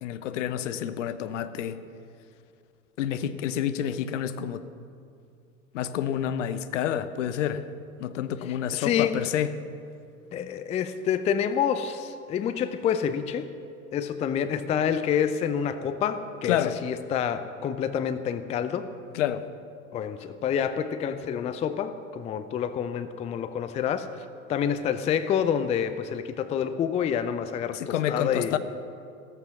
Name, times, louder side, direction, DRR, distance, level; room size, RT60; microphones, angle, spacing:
voice 1, 0.0-1.8 3.0-4.6 5.7-7.6 8.0-9.5 16.5-16.8 19.1-19.5 27.7-28.6, left 10 dB, 55° left, 12 dB, 0.9 m, -28 dB
voice 2, 8.7-9.2 10.3-13.5 13.9-18.9 19.9-24.1 24.5-28.6, left 8 dB, 15° left, 12 dB, 0.5 m, -28 dB
16.0 x 13.5 x 6.1 m, 2.4 s
figure-of-eight pair, 85°, 43 cm